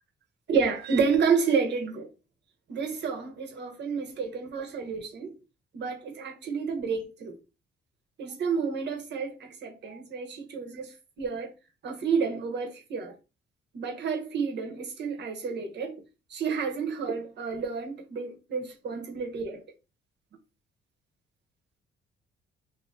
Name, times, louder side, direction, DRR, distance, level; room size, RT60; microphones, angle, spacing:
voice 1, 0.5-2.1 2.7-5.4 5.7-7.4 8.2-11.5 11.8-13.1 13.7-16.0 16.3-19.6, right 5 dB, 60° right, 1.0 m, -30 dB
2.8 x 2.6 x 3.6 m
cardioid pair, 90°, 20 cm